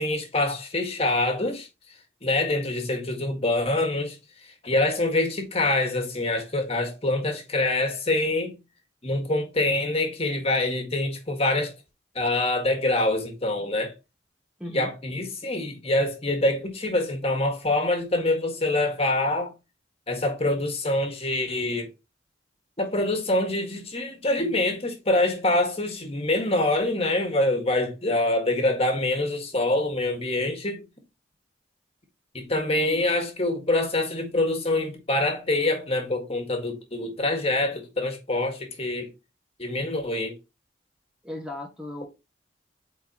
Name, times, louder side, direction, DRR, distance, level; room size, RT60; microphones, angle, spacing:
voice 1, 0.0-1.7 2.2-8.6 9.0-11.7 12.1-13.9 14.7-19.5 20.1-21.9 22.8-30.8 32.3-39.1 39.6-40.3, left 2 dB, 30° left, 1.7 m, -25 dB
voice 2, 14.6-14.9 32.7-33.1 41.2-42.1, left 2 dB, 5° right, 1.0 m, -36 dB
8.4 x 4.2 x 2.9 m
head